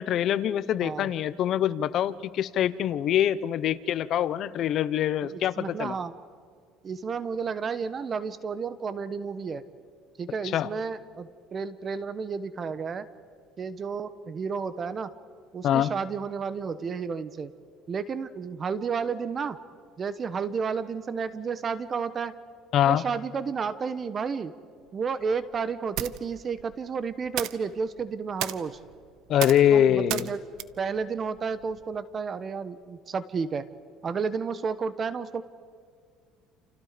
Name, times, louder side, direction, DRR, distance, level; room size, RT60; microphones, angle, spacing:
voice 1, 0.0-5.9 10.5-10.7 15.6-15.9 22.7-23.0 29.3-30.3, left 10 dB, 55° left, 15 dB, 0.9 m, -24 dB
voice 2, 5.3-6.1 6.8-9.6 10.2-13.1 13.6-15.1 15.5-17.5 17.9-19.6 20.0-22.3 22.9-24.5 24.9-28.8 29.7-30.4 30.8-33.7 34.0-35.4, right 5 dB, 35° right, 13 dB, 1.2 m, -31 dB
sound 1, 24.8-32.0, right 14 dB, 70° right, 1.0 m, -38 dB
29.5 x 28.5 x 5.2 m, 2.1 s
cardioid pair, 120°, 0 cm